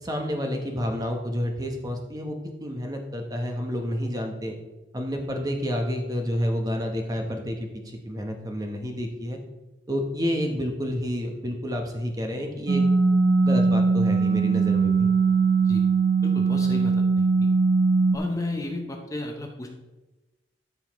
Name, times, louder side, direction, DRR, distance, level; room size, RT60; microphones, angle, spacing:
voice 1, 0.0-4.6 4.9-9.4 9.9-12.9 13.4-15.1, equal, 20° right, 3 dB, 1.0 m, -29 dB
sound 1, 12.7-18.2, right 4 dB, 50° right, 0.7 m, -20 dB
voice 2, 16.2-17.3 18.1-19.7, left 2 dB, 15° left, 2 dB, 0.8 m, -33 dB
13.0 x 5.6 x 3.1 m, 1.1 s
head